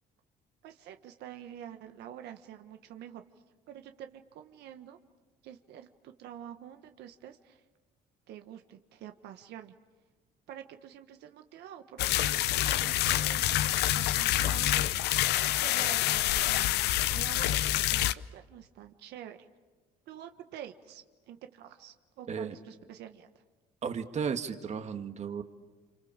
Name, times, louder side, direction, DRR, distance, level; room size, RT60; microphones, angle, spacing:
voice 1, 0.6-3.2 3.7-5.0 5.4-7.6 8.3-9.7 10.5-16.8 17.1-19.5 20.1-23.4, right 10 dB, 80° right, 7 dB, 1.4 m, -47 dB
sound 1, 12.0-18.1, left 14 dB, 85° left, 0.8 m, -27 dB
voice 2, 23.8-25.4, right 6 dB, 40° right, 7 dB, 1.9 m, -34 dB
29.5 x 27.0 x 7.4 m, 1.3 s
cardioid pair, 110°, 17 cm